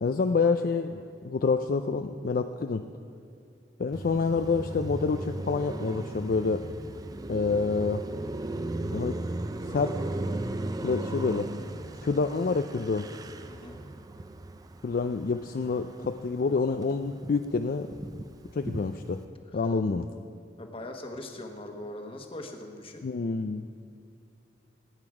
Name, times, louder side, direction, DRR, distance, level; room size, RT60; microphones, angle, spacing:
voice 1, 0.0-2.8 3.8-6.6 7.3-8.0 8.9-9.2 9.7-9.9 10.8-11.5 12.0-13.1 14.8-17.9 18.5-19.2 19.5-20.0 23.0-23.6, left 4 dB, 55° left, 7 dB, 0.4 m, -27 dB
Car passing by, 3.9-16.4 16.7-19.2, right 2 dB, 20° right, 0.4 m, -36 dB
voice 2, 20.6-23.1, left 1 dB, 30° left, 4 dB, 1.3 m, -41 dB
18.0 x 9.0 x 4.9 m, 2.6 s
head